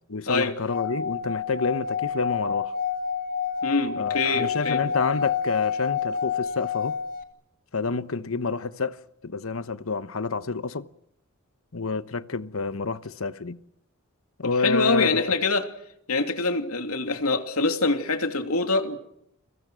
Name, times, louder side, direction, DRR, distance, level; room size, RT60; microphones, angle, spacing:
voice 1, 0.1-2.7 4.0-7.0 7.7-9.0 9.2-10.9 11.7-13.6 14.4-15.4, left 4 dB, 65° left, 1.1 m, -28 dB
Singing / Glass, 0.6-7.2, left 7 dB, 40° left, 2.5 m, -28 dB
voice 2, 3.6-4.8 14.4-15.7 16.1-19.0, left 3 dB, 90° left, 3.0 m, -25 dB
30.0 x 23.5 x 6.4 m
head